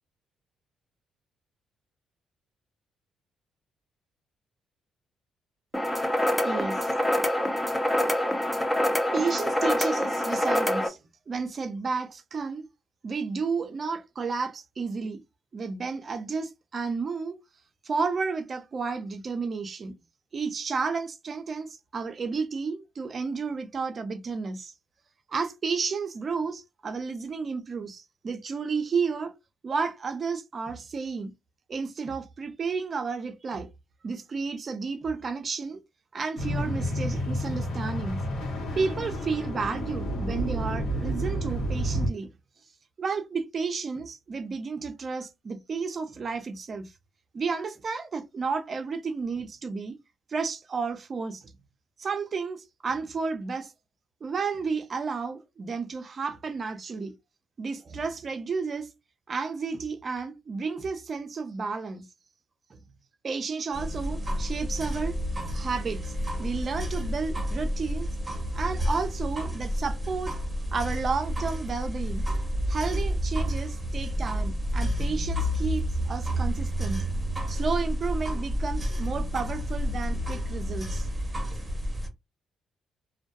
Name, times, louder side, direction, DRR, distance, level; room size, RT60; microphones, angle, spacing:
sound 1, 5.7-10.9, left 1 dB, 10° left, 0.6 m, -26 dB
voice 1, 6.4-6.9 9.1-11.0 11.3-12.7 13.0-15.2 15.5-17.4 17.8-20.0 20.3-24.7 25.3-29.4 29.6-31.3 31.7-33.7 34.0-35.8 36.1-38.2 38.8-42.3 43.0-46.9 47.3-50.0 50.3-51.5 52.0-53.7 54.2-57.1 57.6-58.9 59.3-62.1 63.2-65.2 65.5-66.1 66.4-68.1 68.5-70.4 70.7-72.2 72.7-77.1 77.5-81.1, right 4 dB, 40° right, 0.5 m, -32 dB
sound 2, 36.4-42.1, equal, 75° left, 1.0 m, -30 dB
sound 3, 63.7-82.1, equal, 15° right, 0.9 m, -30 dB
2.2 x 2.2 x 2.6 m
cardioid pair, 90°, 0 cm